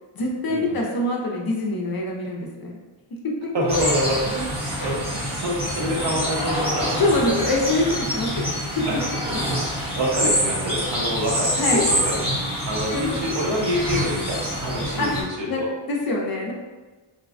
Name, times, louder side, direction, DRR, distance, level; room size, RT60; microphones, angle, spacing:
voice 1, 0.1-2.8 3.2-3.5 4.8-4.9 7.0-8.9 11.6-11.8 12.9-13.2 15.0-15.1 15.5-16.5, left 2 dB, 50° left, -1 dB, 0.6 m, -25 dB
voice 2, 3.5-6.9 8.9-9.0 9.3-12.2 12.7-15.7, equal, 60° right, -2 dB, 0.7 m, -26 dB
sound 1, 3.7-15.2, equal, 10° right, 0.9 m, -26 dB
3.9 x 2.2 x 2.4 m, 1.3 s
wide cardioid pair, 135°, 49 cm